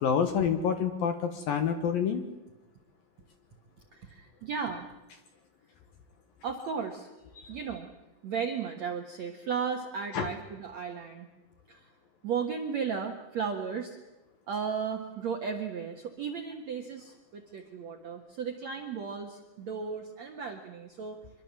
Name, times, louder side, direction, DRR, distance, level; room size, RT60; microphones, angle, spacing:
voice 1, 0.0-2.2 7.4-7.5 10.1-10.3, left 7 dB, 65° left, 7 dB, 2.5 m, -27 dB
voice 2, 3.9-4.9 6.4-7.1 7.5-7.9 8.2-11.3 11.7-11.9 12.2-14.0 14.5-21.2, right 6 dB, 65° right, 3 dB, 1.7 m, -35 dB
25.5 x 22.5 x 7.5 m, 1.1 s
omnidirectional pair, 5.4 m